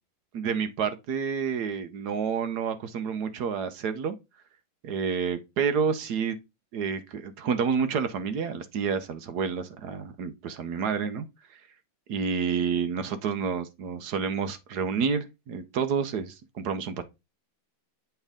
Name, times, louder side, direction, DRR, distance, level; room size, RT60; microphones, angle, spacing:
voice 1, 0.3-4.1 4.8-6.4 6.7-11.2 11.5-11.6 12.1-17.0, right 6 dB, 65° right, 1.1 m, -29 dB
8.1 x 3.5 x 3.5 m
omnidirectional pair, 2.2 m